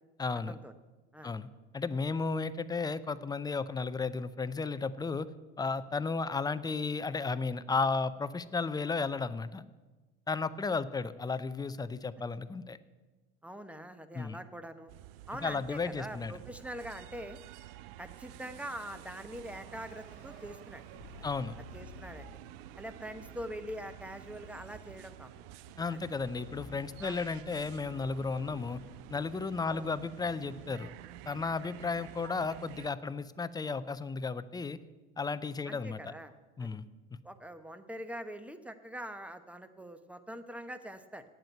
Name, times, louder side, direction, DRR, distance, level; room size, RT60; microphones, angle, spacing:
voice 1, 0.2-0.6 1.2-1.5 1.7-5.3 5.6-9.6 10.3-12.8 14.1-14.4 15.4-16.4 21.2-21.5 25.8-28.8 29.1-30.9 31.3-34.8 35.2-36.1 36.6-36.8, left 4 dB, 15° left, 14 dB, 0.5 m, -34 dB
voice 2, 13.4-14.9 15.3-17.4 18.0-20.8 21.7-22.3 22.8-25.3 25.9-26.0 27.0-27.2 29.6-29.9 35.7-36.3 36.6-36.7 37.2-41.2, equal, 5° right, 10 dB, 0.9 m, -43 dB
sound 1, 14.9-32.9, right 13 dB, 70° right, 0.6 m, -50 dB
sound 2, 18.5-28.6, right 2 dB, 50° right, 1.7 m, -61 dB
sound 3, 19.3-22.6 23.1-23.6 26.2-30.3, left 7 dB, 75° left, 0.7 m, -55 dB
9.0 x 7.7 x 9.0 m, 1.2 s
hypercardioid pair, 80°, 30 cm